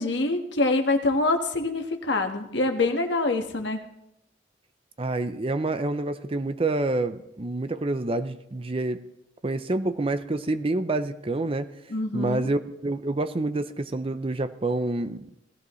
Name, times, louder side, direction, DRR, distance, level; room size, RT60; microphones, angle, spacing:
voice 1, 0.0-3.8 11.9-12.5, left 2 dB, 60° left, 4 dB, 1.5 m, -25 dB
voice 2, 5.0-9.0 9.4-11.7 12.1-15.3, right 2 dB, 30° right, 11 dB, 0.5 m, -27 dB
18.0 x 15.0 x 3.2 m, 0.81 s
head